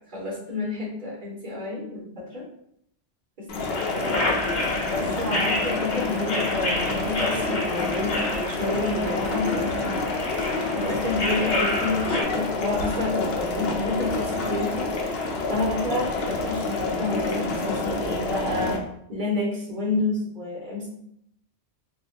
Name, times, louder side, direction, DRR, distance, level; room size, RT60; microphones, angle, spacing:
voice 1, 0.1-2.4 3.4-3.6 3.9-4.0 4.8-10.1 10.7-14.9 15.5-18.8 19.1-20.9, left 2 dB, 45° right, -4 dB, 1.3 m, -29 dB
sound 1, 3.5-18.8, left 3 dB, 70° left, 0.8 m, -28 dB
sound 2, 3.6-12.2, left 1 dB, 85° left, 1.1 m, -30 dB
4.1 x 2.2 x 2.5 m, 0.72 s
omnidirectional pair, 1.1 m